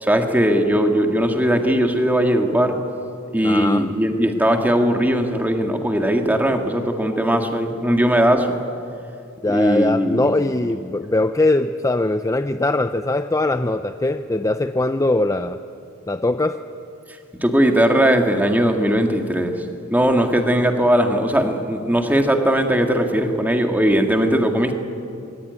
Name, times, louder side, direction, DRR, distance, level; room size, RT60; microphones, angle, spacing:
voice 1, 0.0-2.8 3.3-8.6 9.4-10.2 17.4-19.6 19.9-24.7, equal, 10° right, 4 dB, 1.9 m, -19 dB
voice 2, 3.4-3.9 9.4-15.6 16.1-16.6, left 2 dB, 15° left, 9 dB, 0.5 m, -21 dB
24.5 x 20.5 x 9.6 m, 2.6 s
head